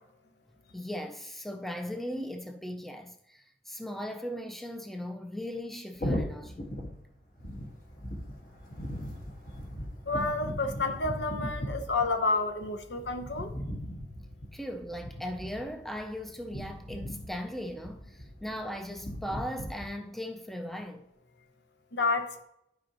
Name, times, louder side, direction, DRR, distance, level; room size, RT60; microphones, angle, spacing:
voice 1, 0.7-6.7 14.5-21.1, equal, ahead, 0.4 m, -38 dB
sound 1, 5.9-19.9, equal, 45° left, 1.5 m, -39 dB
voice 2, 10.0-13.5 21.9-22.4, left 3 dB, 75° left, 0.9 m, -30 dB
11.5 x 5.0 x 2.9 m
head